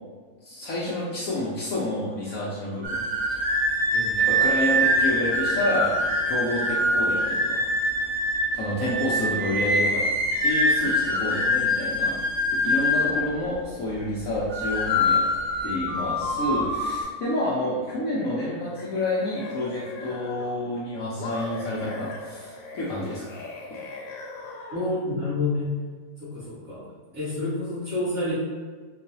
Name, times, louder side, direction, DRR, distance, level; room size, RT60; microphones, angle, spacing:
voice 1, 0.4-3.0 3.3-3.4 4.1-7.6 8.5-10.0 10.4-12.2 12.6-15.2 15.6-23.3, left 1 dB, 65° left, -7 dB, 1.0 m, -29 dB
sound 1, 2.8-13.5 14.3-17.0, equal, 70° right, 1.4 m, -24 dB
sound 2, 18.5-20.7 21.2-25.1, left 3 dB, 85° left, 1.2 m, -40 dB
voice 2, 24.7-25.7 26.2-26.8 27.1-28.3, left 2 dB, 45° right, -14 dB, 1.9 m, -28 dB
4.5 x 2.4 x 2.7 m, 1.5 s
omnidirectional pair, 1.7 m